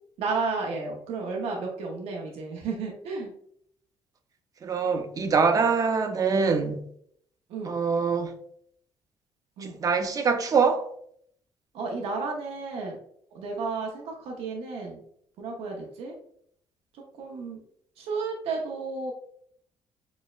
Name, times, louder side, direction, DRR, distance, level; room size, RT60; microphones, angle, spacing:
voice 1, 0.2-3.3 7.5-7.7 9.6-9.8 11.7-13.0 13.3-15.0 15.4-16.1 17.1-17.6 18.0-19.1, right 4 dB, 85° right, 0.7 m, -32 dB
voice 2, 4.6-6.8 7.6-8.3 9.6-10.9, right 5 dB, 35° right, 0.5 m, -24 dB
6.1 x 2.1 x 2.4 m
cardioid pair, 125°, 10 cm